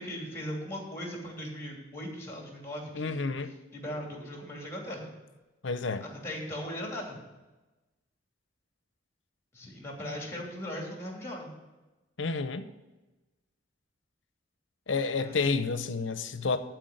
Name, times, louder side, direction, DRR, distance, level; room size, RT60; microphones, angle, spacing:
voice 1, 0.0-3.3 3.7-5.1 6.0-7.2 9.5-11.5 15.2-15.5, equal, 15° left, 2.8 m, -39 dB
voice 2, 2.9-3.5 5.6-6.0 12.2-12.7 14.9-16.6, left 4 dB, 70° left, 0.8 m, -30 dB
11.5 x 4.7 x 8.0 m
head